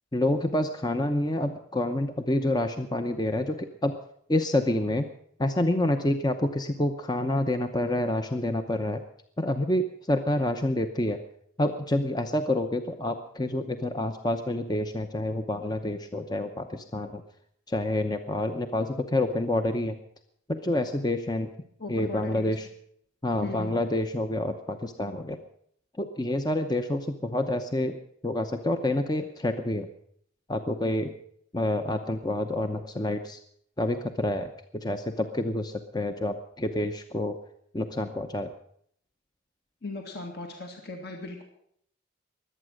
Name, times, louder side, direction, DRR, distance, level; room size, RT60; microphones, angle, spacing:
voice 1, 0.1-4.0 4.3-5.1 5.4-9.0 9.4-11.2 11.6-17.2 17.7-20.0 20.5-21.5 21.9-22.7 23.2-25.4 26.0-29.9 30.5-31.1 31.5-33.4 33.8-37.4 37.7-38.5, left 1 dB, 20° left, 7 dB, 0.8 m, -28 dB
voice 2, 21.8-22.5 23.4-23.7 39.8-41.4, left 2 dB, 55° left, 2 dB, 2.2 m, -38 dB
22.5 x 8.9 x 6.4 m, 0.67 s
head